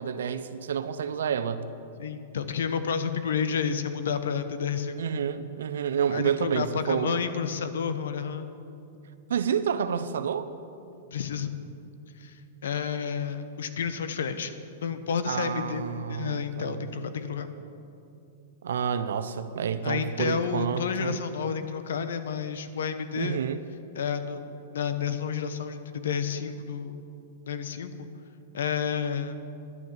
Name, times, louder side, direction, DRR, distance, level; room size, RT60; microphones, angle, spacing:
voice 1, 0.0-1.7 5.0-7.2 9.3-10.5 15.3-16.9 18.6-21.2 23.2-23.6, right 7 dB, 85° right, 12 dB, 0.7 m, -29 dB
voice 2, 2.0-5.0 6.1-8.5 11.1-11.5 12.2-12.4 12.6-14.5 14.8-17.5 19.8-23.4 23.9-24.5 24.7-27.0 27.5-28.1 28.5-29.4, left 6 dB, 85° left, 10 dB, 1.0 m, -30 dB
11.0 x 9.6 x 7.3 m, 2.6 s
hypercardioid pair, 145°, 0 cm